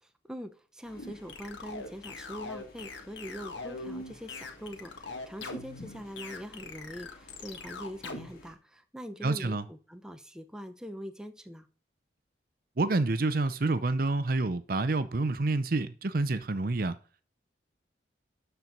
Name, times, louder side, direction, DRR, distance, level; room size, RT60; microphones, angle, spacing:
voice 1, 0.0-11.7, equal, 5° right, 0.8 m, -43 dB
sound 1, 0.8-8.5, left 1 dB, 50° left, 2.4 m, -56 dB
sound 2, 1.0-8.3, left 3 dB, 80° left, 1.7 m, -41 dB
voice 2, 9.2-9.6 12.8-17.0, right 2 dB, 50° right, 0.6 m, -28 dB
12.5 x 4.5 x 5.3 m
head